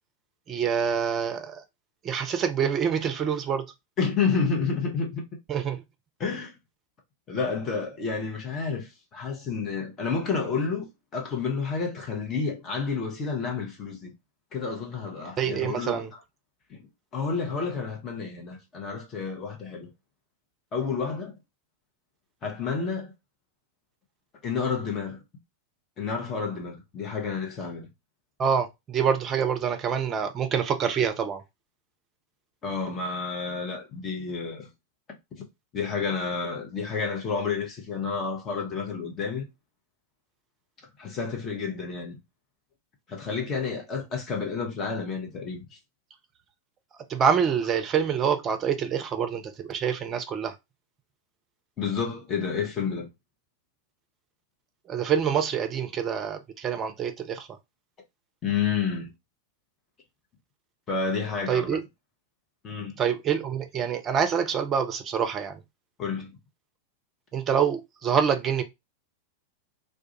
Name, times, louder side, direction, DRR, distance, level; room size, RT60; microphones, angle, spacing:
voice 1, 0.5-1.6 2.0-3.7 5.5-5.8 15.4-16.1 28.4-31.4 47.1-50.5 54.9-57.5 61.5-61.8 63.0-65.6 67.3-68.6, right 7 dB, 25° right, 0.5 m, -26 dB
voice 2, 4.0-5.2 6.2-6.5 7.3-10.8 11.1-14.1 14.5-16.2 16.7-16.8 17.1-19.9 20.7-21.4 22.4-23.1 24.4-25.2 26.0-27.9 32.6-34.7 35.4-35.5 35.7-39.4 41.0-42.2 43.1-45.6 51.8-53.1 58.4-59.1 60.9-61.8 62.6-63.0 66.0-66.3, left 5 dB, 30° left, 0.8 m, -30 dB
2.3 x 2.1 x 2.8 m
figure-of-eight pair, 90°, 0 cm